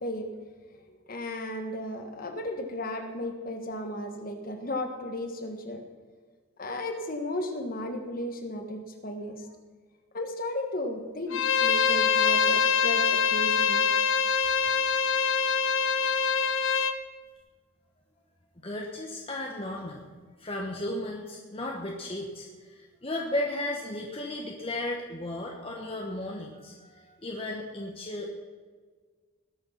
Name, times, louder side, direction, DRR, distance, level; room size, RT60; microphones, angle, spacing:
voice 1, 1.1-5.8 6.6-9.5 10.1-13.9, left 1 dB, 45° left, 5 dB, 1.4 m, -34 dB
Bowed string instrument, 11.3-17.0, left 6 dB, 70° left, 0.8 m, -24 dB
voice 2, 18.6-20.0 20.4-28.4, left 1 dB, 30° left, 0 dB, 1.1 m, -35 dB
19.5 x 6.5 x 5.8 m, 1.5 s
head